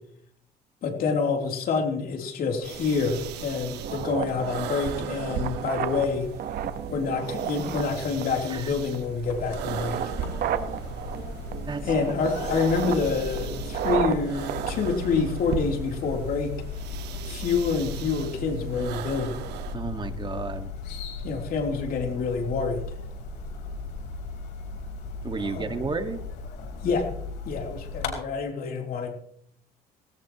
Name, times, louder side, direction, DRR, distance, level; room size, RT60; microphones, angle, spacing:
voice 1, 0.8-6.3 6.9-10.0 11.8-16.5 17.3-19.4 21.2-23.0 25.5-25.7 26.8-27.1 27.5-29.2, left 5 dB, 60° left, 2 dB, 3.5 m, -27 dB
sound 1, 2.6-19.8, right 8 dB, 85° right, 1.6 m, -38 dB
sound 2, 3.8-15.8, right 9 dB, 60° right, 1.3 m, -33 dB
sound 3, 9.2-28.1, left 4 dB, 80° left, 4.4 m, -37 dB
voice 2, 19.7-20.7 25.2-26.2, right 4 dB, 25° right, 7 dB, 1.8 m, -32 dB
18.5 x 18.0 x 3.1 m, 0.67 s
cardioid pair, 110°, 17 cm